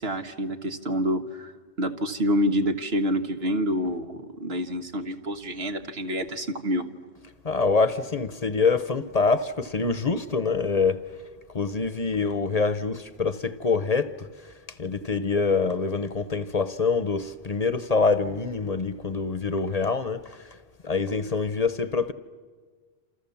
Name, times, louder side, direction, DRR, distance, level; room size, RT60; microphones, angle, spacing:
voice 1, 0.0-1.5 1.8-6.8, equal, 75° right, 1.8 m, -27 dB
voice 2, 7.4-11.1 11.5-14.3 14.8-20.5 20.8-22.1, left 4 dB, 40° left, 0.9 m, -25 dB
28.0 x 28.0 x 7.2 m
omnidirectional pair, 1.0 m